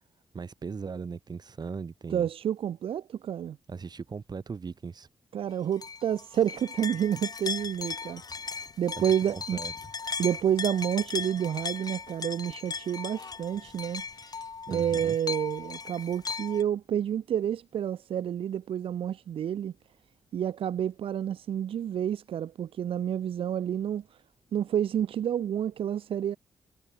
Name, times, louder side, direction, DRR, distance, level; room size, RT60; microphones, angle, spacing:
voice 1, 0.3-2.3 3.7-5.1 9.0-9.7 14.7-15.2, right 5 dB, 45° right, 4.8 m, -38 dB
voice 2, 2.1-3.6 5.3-9.6 10.2-19.7 20.3-24.0 24.5-26.4, right 9 dB, 75° right, 3.6 m, -29 dB
sound 1, 5.8-16.6, left 5 dB, 45° left, 2.1 m, -37 dB
cardioid pair, 60°, 9 cm